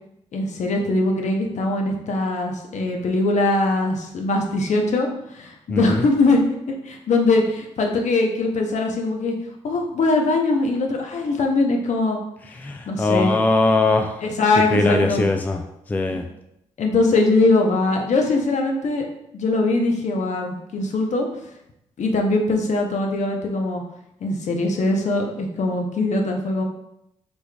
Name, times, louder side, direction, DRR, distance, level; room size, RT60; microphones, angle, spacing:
voice 1, 0.3-9.4 9.6-12.2 12.9-13.3 14.2-15.2 16.8-19.1 19.3-21.3 22.0-23.8 24.2-26.6, left 2 dB, 60° left, 2 dB, 0.7 m, -21 dB
voice 2, 5.7-6.1 12.6-14.2 14.7-15.6 15.9-16.3, left 2 dB, 10° left, 5 dB, 0.3 m, -21 dB
4.0 x 3.2 x 2.3 m, 0.81 s
cardioid pair, 65°, 14 cm